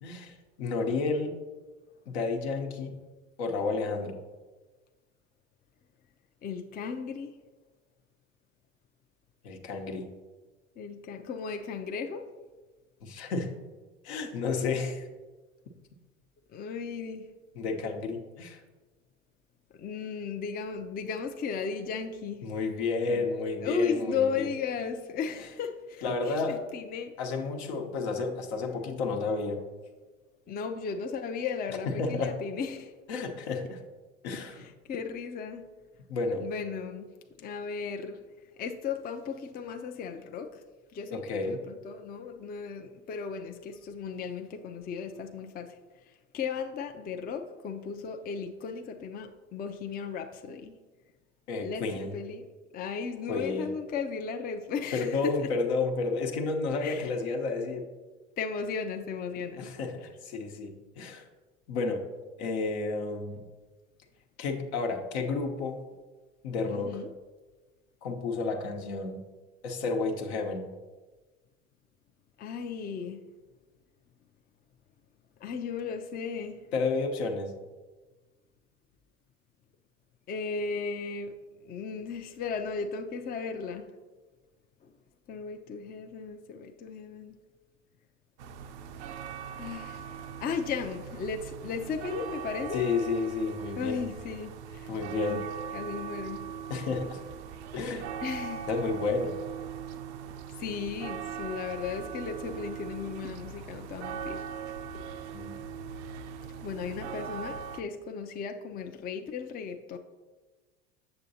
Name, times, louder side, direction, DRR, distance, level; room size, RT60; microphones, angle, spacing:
voice 1, 0.0-1.4 2.1-3.0 3.4-4.2 9.4-10.1 13.0-13.6 14.0-15.1 17.6-18.6 22.4-24.5 26.0-26.6 27.2-29.7 32.0-32.4 33.1-33.8 34.2-34.6 36.1-36.5 41.1-41.6 51.5-52.2 53.3-53.7 54.9-57.9 59.6-61.2 61.7-62.1 62.4-63.5 64.4-65.8 66.4-67.0 68.0-69.2 69.6-70.7 76.7-77.5 92.7-94.1 94.9-95.4 96.7-97.2 97.7-98.1 98.7-99.3 105.3-105.6, left 4 dB, 70° left, 4 dB, 1.0 m, -31 dB
voice 2, 6.4-7.4 10.8-12.3 16.5-17.3 19.7-22.5 23.1-23.3 23.6-27.2 30.5-32.9 34.6-35.7 36.4-37.1 37.4-38.2 38.6-40.6 40.9-45.8 46.3-50.7 51.6-52.4 52.7-55.5 56.8-57.1 58.4-59.7 66.6-67.1 72.4-73.2 75.4-76.6 80.3-81.3 81.6-83.9 84.8-84.9 85.3-87.3 89.6-90.1 90.4-92.8 93.8-95.5 95.7-96.5 98.2-98.7 100.6-104.5 106.6-110.0, left 5 dB, 25° left, 5 dB, 0.5 m, -35 dB
sound 1, 88.4-107.8, right 7 dB, 70° right, 0.6 m, -40 dB
7.8 x 6.7 x 2.8 m, 1.3 s
hypercardioid pair, 75°, 35 cm